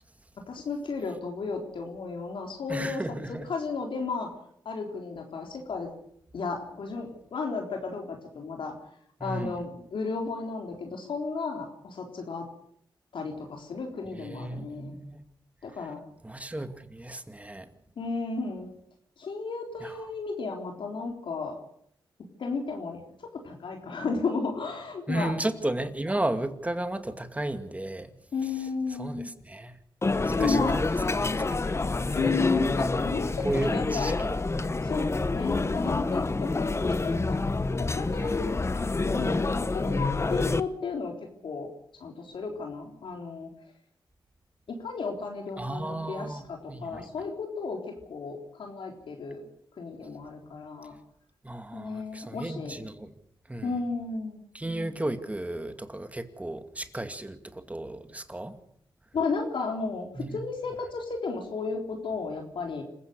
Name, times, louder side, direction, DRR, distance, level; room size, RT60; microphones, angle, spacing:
voice 1, 0.5-3.2 3.5-4.3 4.7-5.9 6.3-8.7 9.2-12.5 13.1-14.9 15.6-16.0 18.0-18.7 19.2-21.6 22.4-25.3 28.3-29.3 30.4-30.8 32.1-34.1 34.8-37.4 37.8-38.6 39.1-41.1 41.4-41.7 42.0-43.5 44.7-49.4 49.8-50.9 51.7-52.8 53.6-54.4 59.1-62.8, left 4 dB, 70° left, 3.7 m, -33 dB
voice 2, 2.7-3.5 9.2-9.5 14.2-15.2 16.2-17.7 19.8-20.0 25.1-28.1 28.4-28.7 29.0-29.8 30.2-31.8 32.0-32.2 33.4-34.7 38.2-38.4 45.6-47.1 51.4-53.1 53.5-53.8 54.5-58.6 60.1-60.4, right 1 dB, 15° right, 2.3 m, -34 dB
sound 1, 30.0-40.6, left 3 dB, 30° left, 1.1 m, -27 dB
27.0 x 15.5 x 6.7 m
cardioid pair, 60°, 9 cm